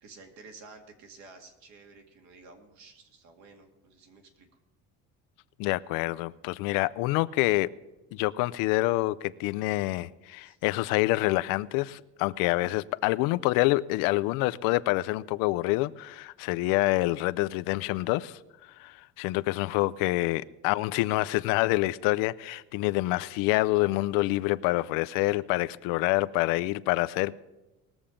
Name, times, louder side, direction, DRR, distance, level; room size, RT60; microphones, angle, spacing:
voice 1, 0.0-4.5 10.4-10.6 19.4-19.5, right 4 dB, 55° right, 2.2 m, -52 dB
voice 2, 5.6-7.7 8.1-18.4 18.8-27.3, left 19 dB, 75° left, 0.5 m, -27 dB
20.5 x 7.2 x 5.1 m
cardioid pair, 165°, 34 cm